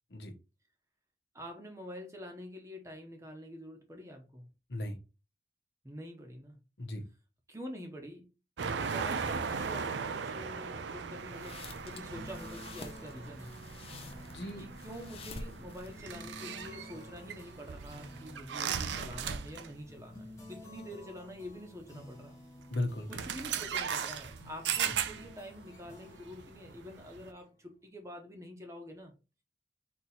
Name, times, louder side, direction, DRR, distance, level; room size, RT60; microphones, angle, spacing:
voice 1, 1.3-4.4 5.8-6.6 7.5-8.3 8.9-11.6 11.8-13.5 14.6-22.4 23.1-29.1, equal, 15° right, 3 dB, 0.9 m, -46 dB
sound 1, 8.6-19.9 20.1-20.4 21.5-21.6 22.6-22.8 23.1-27.3, right 6 dB, 90° right, 0.5 m, -38 dB
sound 2, 11.2-16.4, left 2 dB, 35° left, 0.5 m, -48 dB
sound 3, 11.9-27.8, left 1 dB, 15° left, 1.0 m, -53 dB
voice 2, 14.2-14.6 22.7-23.2 24.8-24.9, left 1 dB, 75° left, 5 dB, 1.0 m, -36 dB
4.3 x 3.0 x 4.0 m, 0.30 s
head